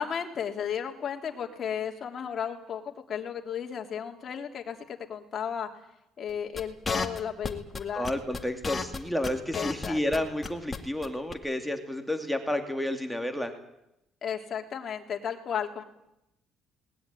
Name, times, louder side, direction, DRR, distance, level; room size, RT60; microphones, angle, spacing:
voice 1, 0.0-5.7 6.2-8.1 9.5-10.2 14.2-15.8, left 8 dB, 45° left, 3 dB, 3.2 m, -34 dB
sound 1, 6.6-10.8 11.0-11.1 11.3-11.4, left 4 dB, 20° left, 2.2 m, -32 dB
voice 2, 7.9-13.5, left 1 dB, ahead, 5 dB, 2.4 m, -31 dB
20.5 x 19.5 x 9.5 m, 0.84 s
cardioid pair, 120°, 0 cm